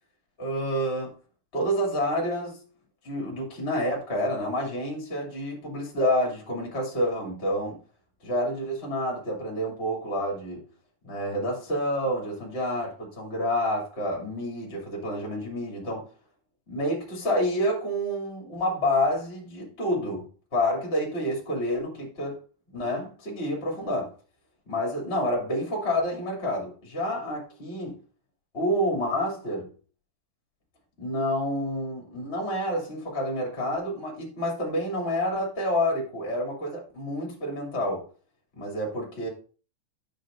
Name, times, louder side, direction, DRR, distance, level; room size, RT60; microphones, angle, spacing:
voice 1, 0.4-1.1 1.5-2.6 3.0-7.8 8.2-10.6 11.0-16.0 16.7-20.2 20.5-22.4 22.7-24.1 24.7-28.0 28.5-29.7 31.0-38.0 38.6-39.3, equal, 20° left, -2 dB, 2.7 m, -28 dB
10.5 x 7.3 x 2.6 m, 0.37 s
omnidirectional pair, 3.7 m